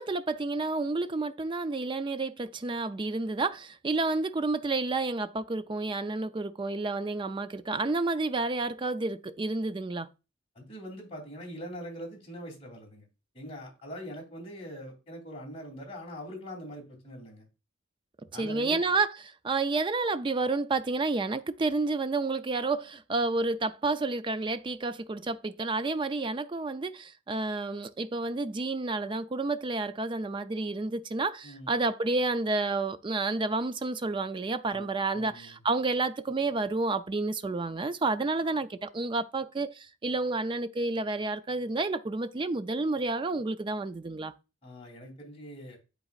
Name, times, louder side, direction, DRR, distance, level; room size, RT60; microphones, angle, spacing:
voice 1, 0.0-10.1 18.3-44.3, right 3 dB, 25° right, 0.4 m, -30 dB
voice 2, 10.5-13.0 13.3-17.4 18.3-18.8 31.4-31.7 34.7-34.9 35.1-35.6 44.6-45.8, equal, 30° left, 3.0 m, -43 dB
10.5 x 4.1 x 2.4 m
head